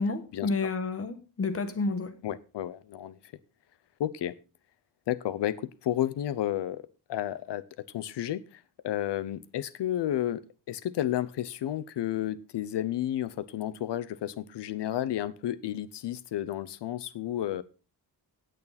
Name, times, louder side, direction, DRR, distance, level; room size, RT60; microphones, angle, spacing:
voice 1, 0.0-2.1, left 3 dB, 35° left, 1.4 m, -30 dB
voice 2, 2.2-3.3 4.0-4.3 5.1-6.8 7.1-10.4 10.7-17.6, left 12 dB, 90° left, 0.9 m, -32 dB
17.5 x 6.7 x 4.1 m
wide cardioid pair, 170°, 41 cm